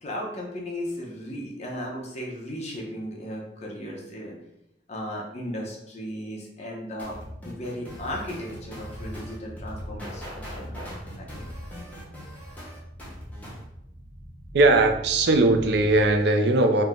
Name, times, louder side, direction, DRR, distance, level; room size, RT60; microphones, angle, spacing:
voice 1, 0.0-4.3 4.9-7.2 7.4-10.8 11.2-11.5, equal, 40° left, -1 dB, 0.9 m, -36 dB
sound 1, 7.0-13.6, equal, 10° left, 1.0 m, -40 dB
sound 2, 8.1-16.1, equal, 20° right, 0.6 m, -43 dB
voice 2, 14.5-16.8, right 2 dB, 65° right, 6 dB, 0.5 m, -19 dB
3.6 x 2.8 x 3.7 m, 0.83 s
head